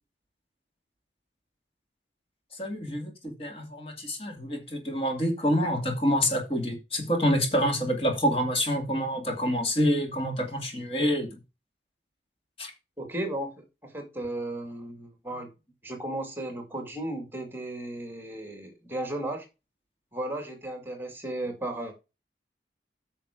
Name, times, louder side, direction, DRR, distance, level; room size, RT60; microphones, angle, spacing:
voice 1, 2.5-11.3 12.6-12.7, equal, 30° left, 2.4 m, -27 dB
voice 2, 13.0-15.5 15.8-19.5 20.1-22.0, right 1 dB, 10° right, 2.2 m, -35 dB
9.2 x 6.0 x 5.0 m
head